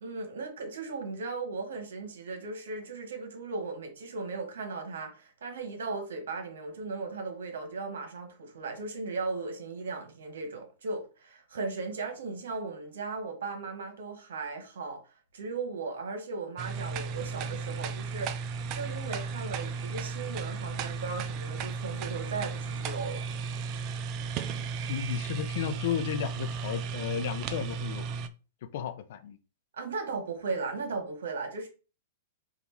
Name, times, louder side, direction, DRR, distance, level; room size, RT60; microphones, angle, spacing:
voice 1, 0.0-15.0 15.3-18.4 18.7-23.3 29.7-31.7, right 4 dB, 80° right, 1.4 m, -37 dB
sound 1, 16.6-28.3, right 5 dB, 40° right, 0.4 m, -35 dB
voice 2, 24.9-28.0 28.6-29.4, left 9 dB, 60° left, 0.6 m, -33 dB
4.8 x 2.6 x 3.4 m
hypercardioid pair, 130°, 0 cm